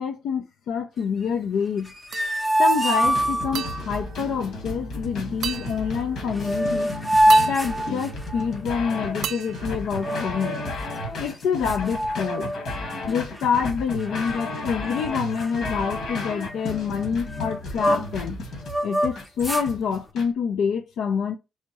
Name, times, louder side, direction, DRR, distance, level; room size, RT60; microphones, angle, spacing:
voice 1, 0.0-1.9 2.6-6.9 7.5-10.6 11.2-12.5 13.1-18.4 18.8-21.3, left 6 dB, 85° left, 0.5 m, -27 dB
sound 1, 1.8-3.8 6.0-6.1 6.3-8.6 9.9-10.7 11.3-11.4 11.7-12.8 13.1-13.4 14.0-14.6 14.9-15.1 15.4-18.2 18.6-19.7, right 1 dB, 5° left, 0.6 m, -24 dB
sound 2, 2.1-2.7 3.5-5.0 5.4-6.4 7.3-8.8 9.2-10.6, right 9 dB, 70° right, 0.3 m, -36 dB
sound 3, 3.0-20.3, left 2 dB, 65° left, 1.8 m, -33 dB
4.3 x 3.5 x 3.0 m
cardioid pair, 160°, 0 cm